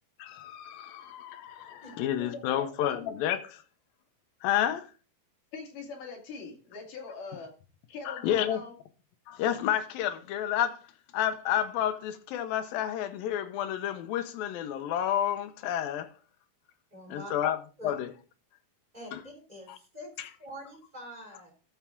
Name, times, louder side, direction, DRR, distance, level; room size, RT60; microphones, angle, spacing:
voice 1, 0.2-3.6 4.4-4.9 8.1-8.6 9.3-10.8 11.1-16.1 17.1-17.6 17.8-18.1 19.1-19.2 20.2-20.3, left 11 dB, 80° left, 2.6 m, -30 dB
voice 2, 2.2-3.0 5.5-7.5 7.9-8.7, left 4 dB, 65° left, 3.7 m, -42 dB
voice 3, 16.9-17.3 17.8-17.9 18.9-20.1 20.4-21.5, equal, 10° right, 2.8 m, -45 dB
13.5 x 5.6 x 3.6 m
omnidirectional pair, 4.2 m